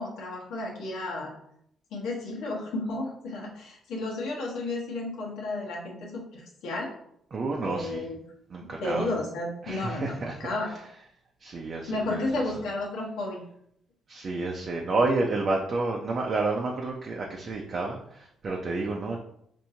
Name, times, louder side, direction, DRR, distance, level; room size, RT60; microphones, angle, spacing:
voice 1, 0.0-1.3 1.9-6.9 7.6-8.2 8.8-10.7 11.9-13.4, left 2 dB, 85° left, -3 dB, 1.0 m, -32 dB
voice 2, 7.3-8.0 8.5-9.1 9.6-10.4 11.4-12.2 14.1-19.2, right 3 dB, 45° right, 0 dB, 0.5 m, -30 dB
4.4 x 2.6 x 2.7 m, 0.71 s
cardioid pair, 90°, 0 cm